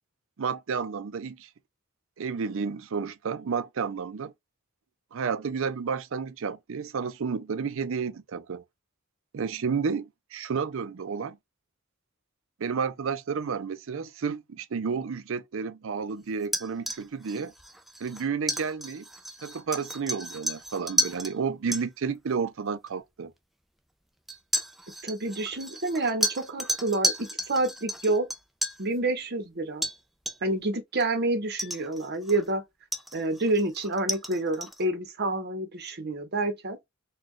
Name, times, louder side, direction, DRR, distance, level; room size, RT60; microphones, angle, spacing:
voice 1, 0.4-1.5 2.2-4.3 5.1-8.6 9.3-11.4 12.6-17.5 18.0-19.1 19.4-23.3, right 5 dB, 70° right, 0.5 m, -31 dB
sound 1, 16.4-21.3 21.7-21.8 22.9-23.0 24.3-28.9 29.8-30.0 30.3-30.6 31.0-31.1 31.6-32.5 32.9-34.8, equal, ahead, 0.4 m, -32 dB
voice 2, 25.0-28.3 28.8-29.9 30.4-32.6 33.1-36.8, right 2 dB, 55° right, 0.9 m, -28 dB
4.2 x 2.3 x 3.1 m
head